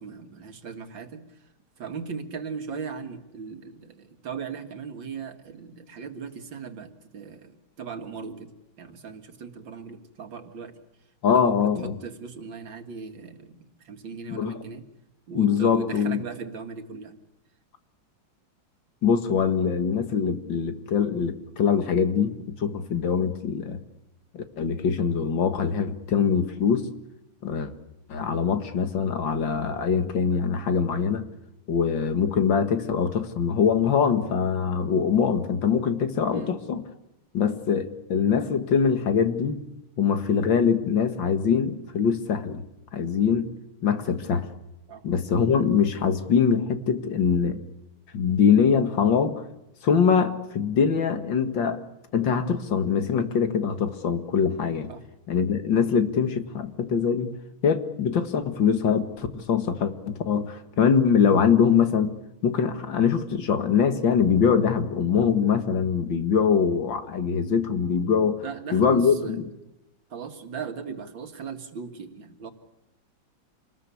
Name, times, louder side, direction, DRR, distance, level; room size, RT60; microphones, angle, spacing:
voice 1, 0.0-1.5 1.8-8.5 8.8-10.7 11.3-14.9 15.3-17.1 36.3-36.6 44.9-45.0 54.9-55.0 68.4-69.4 70.1-72.5, right 5 dB, 65° right, 7 dB, 2.6 m, -38 dB
voice 2, 11.2-12.0 14.3-14.5 15.3-16.2 19.0-23.8 24.3-26.9 27.4-27.7 28.1-31.3 31.7-36.8 37.3-39.6 40.0-42.6 42.9-43.5 43.8-44.5 45.0-47.6 48.1-49.4 49.8-51.8 52.1-54.9 55.3-57.4 57.6-62.1 62.4-68.4 68.7-69.5, left 6 dB, 65° left, 9 dB, 2.4 m, -23 dB
28.0 x 20.0 x 8.4 m, 0.90 s
omnidirectional pair, 2.2 m